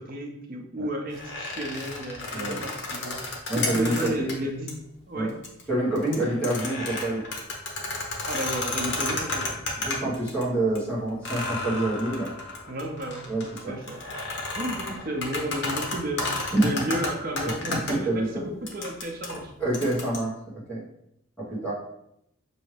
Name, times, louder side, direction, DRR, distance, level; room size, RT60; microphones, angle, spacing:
voice 1, 0.0-3.2 3.5-5.3 8.2-10.0 12.7-13.3 13.7-14.0 14.4-19.5, right 1 dB, 45° right, 1 dB, 0.6 m, -33 dB
sound 1, 1.1-4.3 4.7-4.8 5.3-5.6 6.0-10.4 10.7-10.8 11.2-17.9 18.7-20.2, left 2 dB, 60° left, 0.9 m, -32 dB
voice 2, 3.5-4.4 5.1-5.3 5.7-7.2 9.8-12.3 13.3-13.7 16.5-16.8 17.7-18.4 19.6-20.8 21.5-21.7, right 1 dB, 5° left, -9 dB, 1.3 m, -27 dB
6.1 x 2.7 x 3.2 m, 0.77 s
head